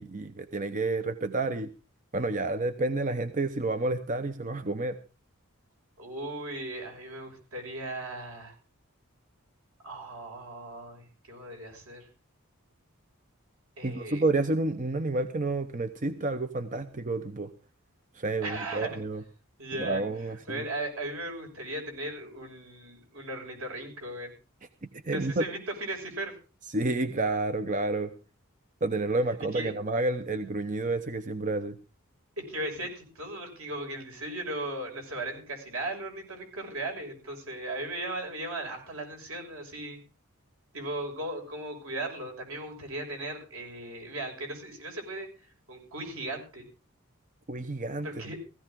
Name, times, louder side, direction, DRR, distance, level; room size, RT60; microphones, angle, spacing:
voice 1, 0.0-1.7 2.1-5.0 13.8-17.5 18.1-19.2 19.8-20.6 25.0-25.4 26.7-28.1 28.8-31.8 47.5-48.3, right 2 dB, 35° right, 9 dB, 0.8 m, -30 dB
voice 2, 6.0-8.5 9.8-12.1 13.8-14.2 18.4-19.0 19.6-20.0 20.5-24.3 25.1-26.3 29.5-29.7 32.4-40.0 40.7-45.3 45.7-46.6 48.0-48.4, right 1 dB, 80° right, 2 dB, 6.3 m, -37 dB
16.5 x 16.0 x 3.7 m, 0.34 s
head